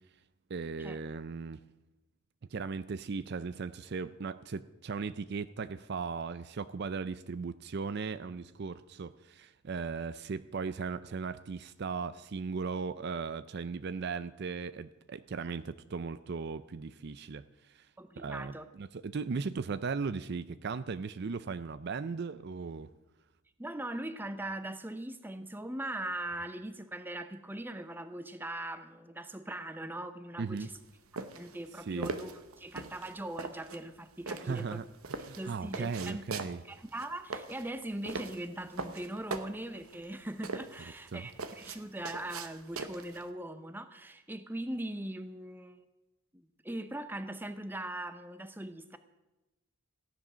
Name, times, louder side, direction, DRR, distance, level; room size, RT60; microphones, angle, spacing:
voice 1, 0.5-1.6 2.5-17.9 18.2-22.9 30.4-30.7 31.9-32.1 34.4-34.8 35.2-36.6 41.1-41.3, right 5 dB, 50° right, 13 dB, 0.4 m, -37 dB
voice 2, 18.0-18.7 23.6-30.7 31.4-34.8 35.2-36.2 36.6-45.8 46.3-49.0, right 1 dB, 10° right, 10 dB, 0.7 m, -40 dB
sound 1, 30.6-43.3, right 3 dB, 80° right, 1.0 m, -41 dB
15.0 x 10.5 x 6.2 m, 1.0 s
head